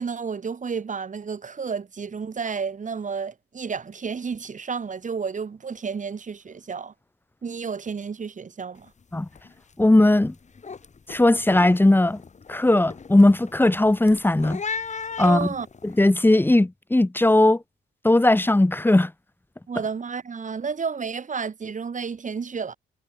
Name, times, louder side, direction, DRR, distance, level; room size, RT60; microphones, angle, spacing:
voice 1, 0.0-6.9 7.4-8.9 15.2-15.7 19.7-22.7, right 5 dB, 40° right, 6.4 m, -31 dB
sound 1, 8.8-9.0 9.3-9.7 10.1-16.1, left 5 dB, 35° left, 6.5 m, -37 dB
voice 2, 9.8-10.3 11.1-12.2 12.5-14.6 15.2-15.5 15.8-17.6 18.0-19.1, left 1 dB, 10° left, 1.8 m, -18 dB
cardioid pair, 90°, 20 cm